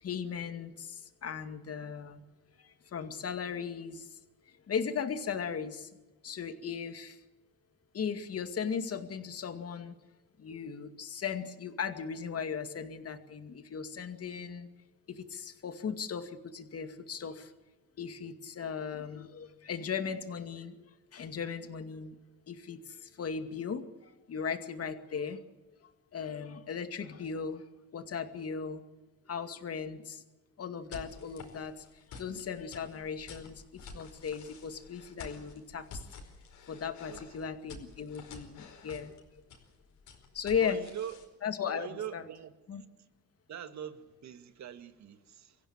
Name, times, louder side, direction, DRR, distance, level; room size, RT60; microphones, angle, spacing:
voice 1, 0.0-2.2 2.6-4.1 4.7-5.9 6.2-7.2 7.9-9.9 10.4-14.7 15.1-17.5 18.0-22.2 22.5-25.4 26.1-27.6 27.9-28.8 29.3-30.2 30.6-31.9 32.2-36.0 36.7-39.1 40.3-40.8 41.4-42.2 42.7-42.8, left 6 dB, 50° left, 8 dB, 2.3 m, -37 dB
sound 1, 30.9-41.3, left 4 dB, 75° left, 4.9 m, -50 dB
voice 2, 40.6-41.2 41.7-42.5 43.5-45.6, right 9 dB, 65° right, 10 dB, 1.8 m, -42 dB
24.5 x 16.0 x 8.9 m, 1.1 s
cardioid pair, 90°, 30 cm